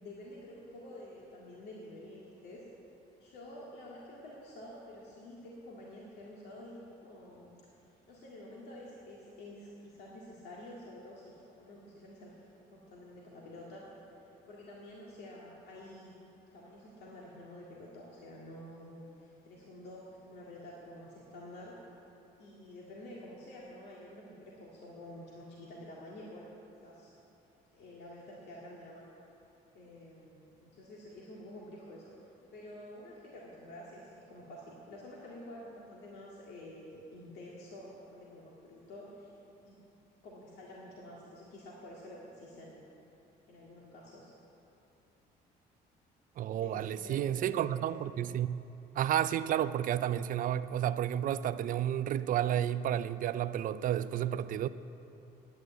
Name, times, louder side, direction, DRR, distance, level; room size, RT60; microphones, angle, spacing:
voice 1, 0.0-2.6 3.2-7.5 8.1-12.3 12.7-13.9 14.2-16.2 16.5-21.8 22.4-26.5 26.8-27.1 27.7-29.1 29.7-32.1 32.5-39.3 39.6-39.8 40.2-42.9 43.5-44.3 46.4-47.9, left 1 dB, 75° left, 2.0 m, -49 dB
voice 2, 46.4-48.6 48.9-54.7, right 11 dB, 55° right, 0.5 m, -31 dB
10.0 x 9.6 x 9.1 m
cardioid pair, 110°, 17 cm